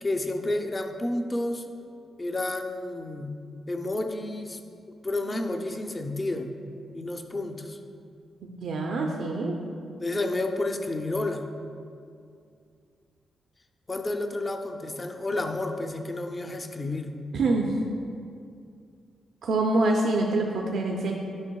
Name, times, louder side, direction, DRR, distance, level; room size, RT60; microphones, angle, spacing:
voice 1, 0.0-1.6 2.2-3.4 3.7-4.6 5.0-6.5 6.9-7.8 10.0-11.5 13.9-17.2, left 2 dB, 25° left, 6 dB, 0.4 m, -30 dB
voice 2, 8.4-9.6 17.3-17.7 19.4-21.1, right 2 dB, 75° right, 0 dB, 0.5 m, -25 dB
9.4 x 5.9 x 2.3 m, 2.4 s
cardioid pair, 110°, 0 cm